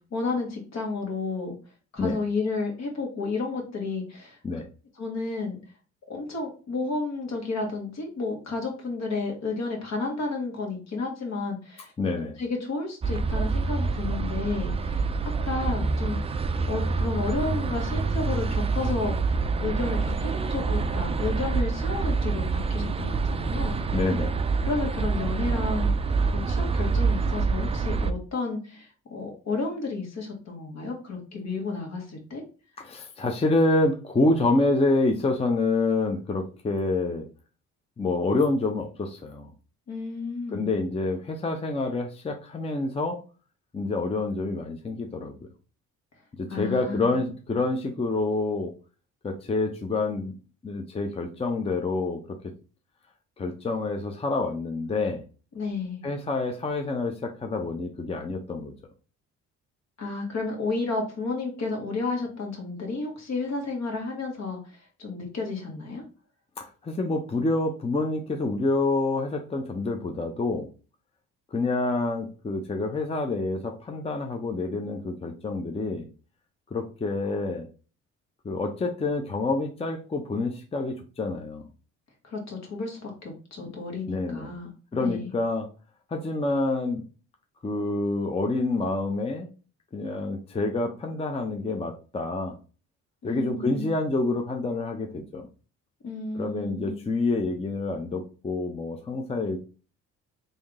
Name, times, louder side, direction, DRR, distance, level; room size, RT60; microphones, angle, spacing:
voice 1, 0.1-1.6 1.9-4.4 5.0-5.6 6.1-11.9 12.4-16.4 16.7-23.8 24.6-32.4 39.9-40.7 46.5-47.2 55.5-56.0 60.0-66.0 82.2-84.7 85.0-85.3 93.2-93.9 96.0-97.0, left 3 dB, 60° left, 1 dB, 1.7 m, -32 dB
voice 2, 12.0-12.4 23.9-24.3 32.8-37.2 38.0-39.5 40.5-43.2 43.7-45.3 46.4-48.7 49.2-50.4 50.6-52.4 53.4-55.2 56.0-58.7 66.6-70.7 71.5-76.1 76.7-77.7 78.4-81.7 83.6-83.7 84.1-84.5 84.9-85.7 86.1-87.0 87.6-89.5 89.9-92.6 93.2-95.5 96.3-99.6, left 2 dB, 20° left, 4 dB, 0.6 m, -27 dB
sound 1, 13.0-28.1, right 4 dB, 20° right, 0.4 m, -26 dB
3.5 x 2.7 x 3.5 m, 0.36 s
cardioid pair, 90°, 30 cm